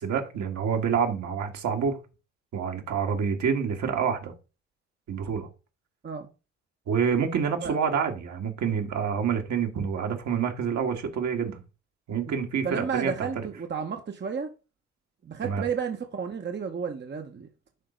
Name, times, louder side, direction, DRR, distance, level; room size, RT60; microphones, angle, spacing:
voice 1, 0.0-2.0 2.5-4.3 5.1-5.5 6.9-11.6 12.1-13.3 15.4-15.6, right 7 dB, 55° right, 1.8 m, -27 dB
voice 2, 12.6-14.5 15.2-17.5, right 6 dB, 30° right, 1.1 m, -32 dB
11.0 x 3.9 x 3.9 m
hypercardioid pair, 50°, 34 cm